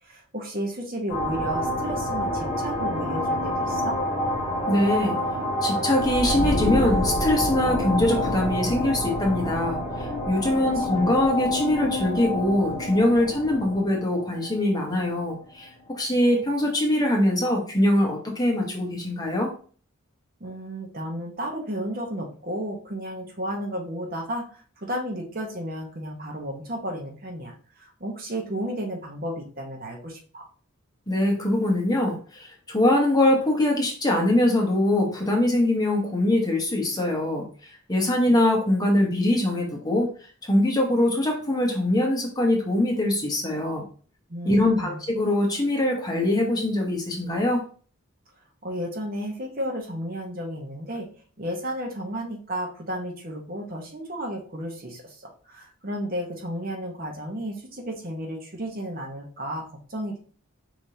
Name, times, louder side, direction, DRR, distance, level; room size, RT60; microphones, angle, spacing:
voice 1, 0.0-4.0 10.5-11.1 20.4-30.5 44.3-45.0 48.6-51.1 51.4-60.2, equal, 45° right, 1 dB, 1.0 m, -33 dB
sound 1, 1.1-15.2, left 1 dB, 35° left, 1.9 m, -27 dB
voice 2, 4.7-5.2 5.6-19.5 31.1-37.5 37.9-40.1 40.4-43.8 44.4-47.6, left 1 dB, 20° left, 0 dB, 1.0 m, -23 dB
4.7 x 3.5 x 2.8 m, 0.41 s
head